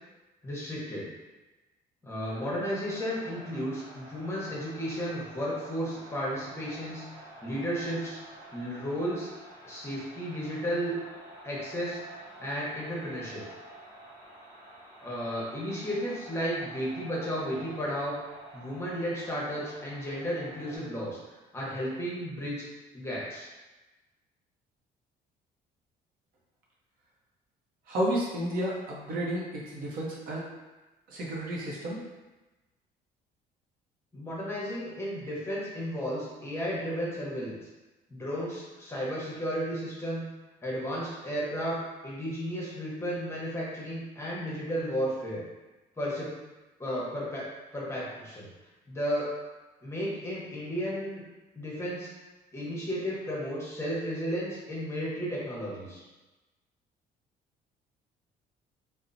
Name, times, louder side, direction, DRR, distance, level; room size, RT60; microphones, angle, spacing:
voice 1, 0.4-1.1 2.0-8.2 8.5-9.3 9.6-10.9 11.4-12.0 12.4-13.4 15.0-18.2 18.5-21.2 21.5-22.6 22.9-23.5 34.1-37.6 38.1-40.2 40.6-45.4 46.0-46.3 46.8-47.5 47.7-48.5 48.9-49.3 49.8-51.2 51.5-52.1 52.5-56.0, equal, 15° left, -6 dB, 0.8 m, -33 dB
sound 1, 2.3-20.8, right 1 dB, 25° right, 1.2 m, -49 dB
voice 2, 27.9-30.4 31.1-32.0, right 1 dB, 60° right, -4 dB, 0.7 m, -31 dB
2.8 x 2.0 x 2.5 m, 1.1 s
cardioid pair, 110°, 17 cm